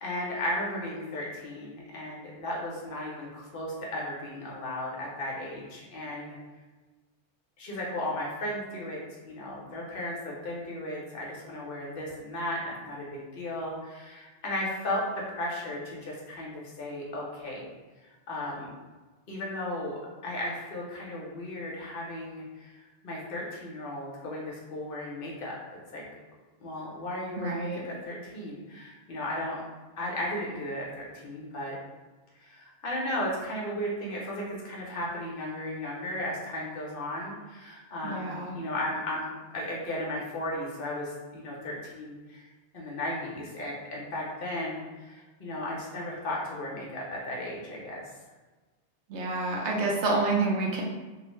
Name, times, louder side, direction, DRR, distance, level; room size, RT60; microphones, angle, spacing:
voice 1, 0.0-6.4 7.6-17.7 18.3-18.7 19.3-25.6 25.9-26.1 26.6-29.6 30.0-31.8 32.4-39.3 39.5-42.5 42.7-48.0, left 1 dB, 60° left, -3 dB, 0.8 m, -35 dB
voice 2, 27.4-27.8 38.0-38.6 49.1-50.8, right 3 dB, 80° right, -2 dB, 0.9 m, -28 dB
2.7 x 2.0 x 2.9 m, 1.2 s
omnidirectional pair, 1.1 m